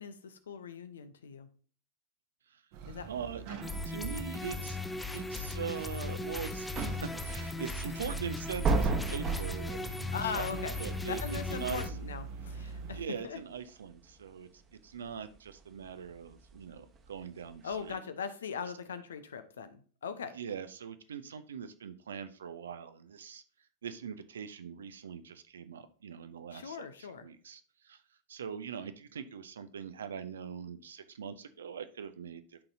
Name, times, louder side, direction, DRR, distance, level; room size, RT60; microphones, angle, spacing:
voice 1, 0.0-1.5 2.9-3.1 10.1-10.8 11.1-13.0 13.2-13.4 17.6-20.3 26.5-27.3, left 6 dB, 65° left, 12 dB, 0.7 m, -40 dB
sound 1, 2.7-13.0, right 5 dB, 50° right, 1.1 m, -44 dB
voice 2, 3.1-3.4 3.8-4.8 5.1-9.9 10.3-11.9 12.6-18.0 20.3-23.4 23.8-28.0 28.3-32.6, right 7 dB, 65° right, 11 dB, 0.7 m, -42 dB
sound 2, 3.6-11.9, left 2 dB, 5° left, 0.6 m, -38 dB
sound 3, 6.0-17.9, right 3 dB, 25° right, 1.2 m, -37 dB
11.5 x 4.1 x 2.7 m, 0.42 s
figure-of-eight pair, 90°, 0 cm